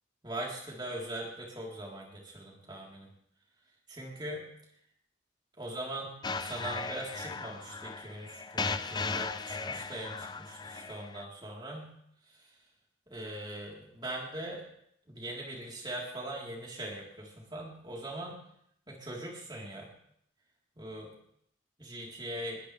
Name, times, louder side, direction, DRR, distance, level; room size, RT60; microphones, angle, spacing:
voice 1, 0.2-3.1 3.9-4.4 5.6-6.1 6.4-11.9 13.1-14.6 15.1-18.4 18.9-19.9 20.8-21.1 21.8-22.6, right 1 dB, 25° right, -3 dB, 3.8 m, -41 dB
sound 1, 6.2-11.2, left 4 dB, 20° left, 0.5 m, -37 dB
21.0 x 15.0 x 3.4 m, 0.71 s
head